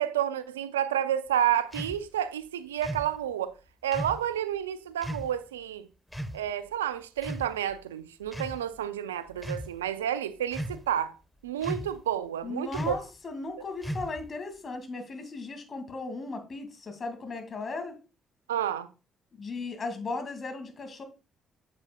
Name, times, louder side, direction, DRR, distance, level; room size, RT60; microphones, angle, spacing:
voice 1, 0.0-3.6 3.8-5.9 6.3-11.2 11.4-13.0 18.5-18.9, right 10 dB, 90° right, 0.4 m, -30 dB
sound 1, 1.7-2.0 2.8-3.1 3.9-4.2 5.0-5.3 6.1-6.4 7.2-7.8 8.3-8.6 9.3-9.7 10.5-10.9 11.6-12.0 12.7-13.1 13.8-14.3, equal, 5° left, 1.1 m, -36 dB
voice 2, 12.4-18.0 19.4-21.0, left 3 dB, 45° left, 2.2 m, -36 dB
8.6 x 7.5 x 2.3 m
hypercardioid pair, 45°, 0 cm